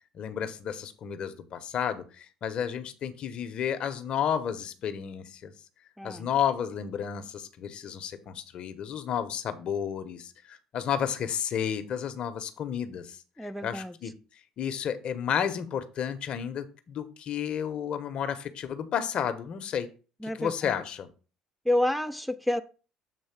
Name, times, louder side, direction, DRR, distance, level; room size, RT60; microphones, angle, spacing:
voice 1, 0.1-5.5 6.0-14.1 14.6-19.9 20.4-21.1, left 8 dB, 55° left, 1.0 m, -32 dB
voice 2, 6.0-6.3 13.4-14.0 20.2-20.8 21.6-22.6, left 1 dB, ahead, 0.5 m, -29 dB
7.6 x 3.1 x 5.9 m
hypercardioid pair, 65°, 2 cm